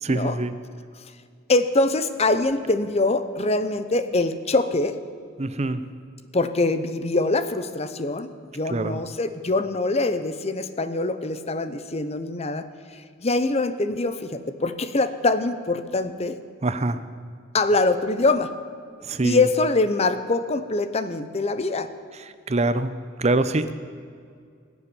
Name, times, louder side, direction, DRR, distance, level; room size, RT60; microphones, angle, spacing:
voice 1, 0.0-0.5 5.4-5.8 8.7-9.0 16.6-17.0 19.0-19.4 22.5-22.9 23.2-23.7, right 2 dB, 35° right, 12 dB, 0.6 m, -24 dB
voice 2, 1.5-4.9 6.3-16.4 17.5-18.5 19.2-21.9, left 2 dB, 30° left, 11 dB, 0.8 m, -24 dB
20.0 x 7.3 x 9.9 m, 2.2 s
head